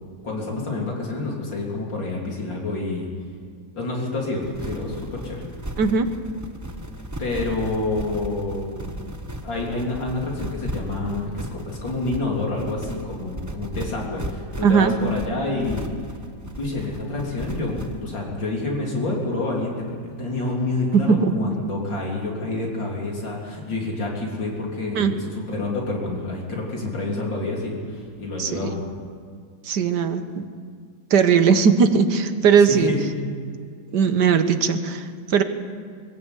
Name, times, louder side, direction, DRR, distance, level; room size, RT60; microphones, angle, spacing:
voice 1, 0.2-3.1 3.7-5.4 7.2-8.9 9.4-15.9 16.6-28.8 32.7-33.1, left 2 dB, 70° left, -2 dB, 4.2 m, -28 dB
sound 1, 4.4-18.1, right 1 dB, 15° right, 0.7 m, -35 dB
voice 2, 5.8-6.1 14.6-14.9 20.9-21.3 24.9-25.1 28.4-28.7 29.6-30.5 31.1-32.9 33.9-35.4, right 6 dB, 65° right, 9 dB, 1.6 m, -19 dB
22.0 x 16.0 x 8.3 m, 2.2 s
omnidirectional pair, 2.1 m